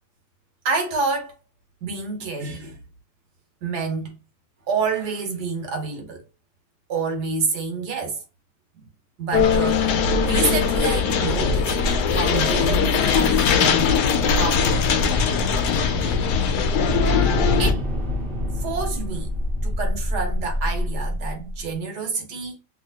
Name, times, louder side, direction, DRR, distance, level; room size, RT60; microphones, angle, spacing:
voice 1, 0.6-1.3 1.8-2.8 3.6-4.2 4.7-6.2 6.9-8.2 9.2-9.9 10.2-11.7 12.1-13.9 14.3-14.9 16.0-16.2 17.6-17.8 18.6-19.3 19.6-22.5, right 4 dB, 80° right, 1.6 m, -28 dB
sound 1, 9.3-17.7, left 5 dB, 80° left, 1.2 m, -20 dB
sound 2, 16.0-21.6, left 1 dB, 40° right, 1.0 m, -27 dB
3.0 x 2.8 x 2.7 m
omnidirectional pair, 1.7 m